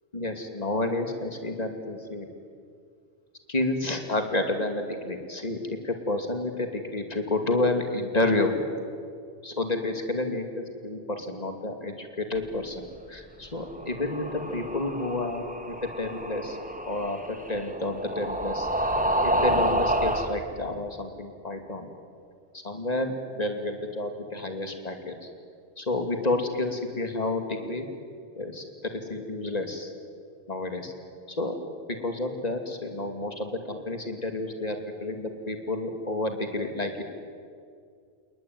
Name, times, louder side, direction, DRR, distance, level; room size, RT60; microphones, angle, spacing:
voice 1, 0.1-2.3 3.5-8.6 9.4-16.6 16.8-18.7 19.2-21.9 22.6-25.2 25.8-27.9 28.3-28.6 28.9-29.9 30.5-30.9 31.3-31.6 31.9-37.0, left 2 dB, 35° left, 5 dB, 2.7 m, -30 dB
sound 1, 13.6-20.3, right 1 dB, 5° right, 2.1 m, -29 dB
30.0 x 19.5 x 9.3 m, 2.2 s
omnidirectional pair, 1.2 m